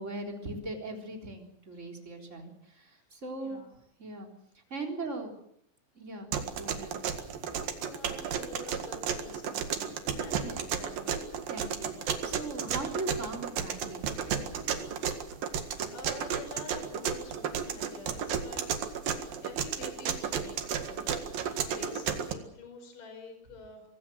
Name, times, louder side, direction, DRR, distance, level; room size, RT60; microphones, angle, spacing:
voice 1, 0.0-3.6 4.0-4.3 4.7-5.3 6.0-6.3 6.6-6.9 7.2-7.3 10.4-10.7 11.5-14.8 21.7-21.8, right 2 dB, 15° right, 2 dB, 3.5 m, -39 dB
voice 2, 3.4-3.8 6.8-6.9 7.8-11.1 15.2-18.6 19.1-23.8, left 3 dB, 45° left, 6 dB, 6.4 m, -48 dB
sound 1, 6.3-22.3, right 7 dB, 55° right, 3.2 m, -33 dB
25.0 x 19.0 x 7.8 m, 0.71 s
omnidirectional pair, 5.4 m